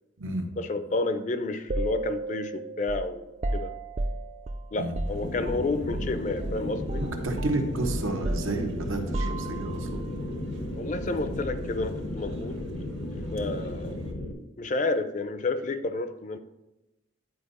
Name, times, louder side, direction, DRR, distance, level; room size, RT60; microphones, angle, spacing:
voice 1, 0.6-3.3 3.5-3.7 4.7-7.0 10.7-12.6 13.3-14.1 14.6-16.4, left 3 dB, 35° left, 10 dB, 0.4 m, -30 dB
sound 1, 1.7-6.1 6.4-6.6 6.9-9.9, right 2 dB, 35° right, 0.4 m, -33 dB
sound 2, 5.0-14.1, equal, 65° right, 1.3 m, -49 dB
sound 3, 5.1-14.3, left 1 dB, 75° left, 0.9 m, -35 dB
voice 2, 7.0-10.1, right 2 dB, 85° right, 4 dB, 1.1 m, -31 dB
10.5 x 4.4 x 4.1 m, 0.97 s
head